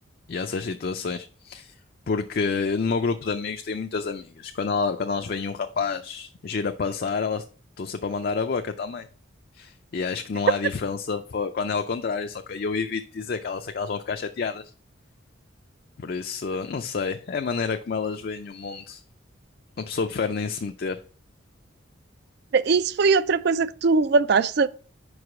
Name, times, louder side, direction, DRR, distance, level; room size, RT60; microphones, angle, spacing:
voice 1, 0.3-1.7 2.1-7.4 7.8-9.1 9.5-14.7 16.0-19.0 19.8-21.0, left 5 dB, 45° left, 0.4 m, -29 dB
voice 2, 22.5-24.7, right 4 dB, 55° right, 0.3 m, -20 dB
5.1 x 4.8 x 6.1 m
head